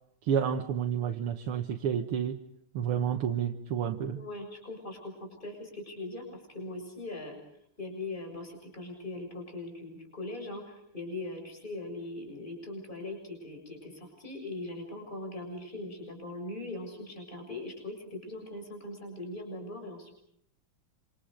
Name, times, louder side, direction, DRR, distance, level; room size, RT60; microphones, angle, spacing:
voice 1, 0.2-2.4 2.7-4.2, right 8 dB, 85° right, 4 dB, 2.1 m, -30 dB
voice 2, 4.2-7.4 7.8-20.1, left 2 dB, 20° left, 3 dB, 7.0 m, -40 dB
28.0 x 27.0 x 5.1 m, 0.72 s
omnidirectional pair, 2.4 m